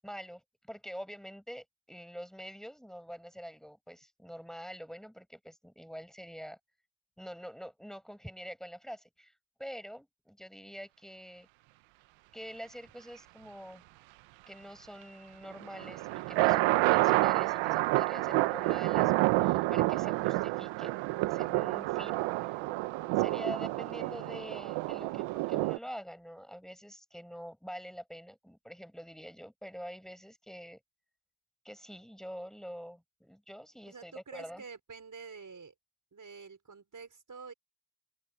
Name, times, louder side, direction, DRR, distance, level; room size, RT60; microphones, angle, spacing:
voice 1, 0.0-6.6 7.2-11.5 12.3-13.8 14.5-20.9 21.3-22.6 23.2-30.8 31.6-34.6, equal, ahead, 7.1 m, -46 dB
sound 1, 15.6-25.8, right 19 dB, 85° right, 1.2 m, -29 dB
voice 2, 33.9-35.7 36.1-37.5, right 5 dB, 45° right, 5.8 m, -48 dB
open air
hypercardioid pair, 50°, 45 cm